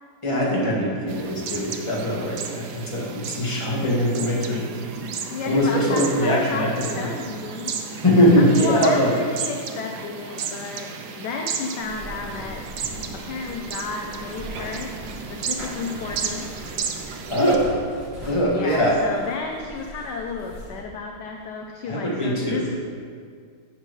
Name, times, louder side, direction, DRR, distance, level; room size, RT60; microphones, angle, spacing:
voice 1, 0.2-4.7 5.4-7.1 8.0-9.1 17.3-17.6 18.3-18.9 21.9-22.7, equal, 15° left, -6 dB, 1.8 m, -21 dB
sound 1, 1.1-17.6, right 6 dB, 65° right, 1.1 m, -34 dB
voice 2, 5.3-8.0 8.4-10.9 11.2-12.6 13.1-16.8 18.5-22.8, left 4 dB, 70° left, 2 dB, 1.1 m, -33 dB
sound 2, 11.8-20.8, equal, 45° right, 3.2 m, -40 dB
11.5 x 7.6 x 3.2 m, 2.1 s
omnidirectional pair, 2.2 m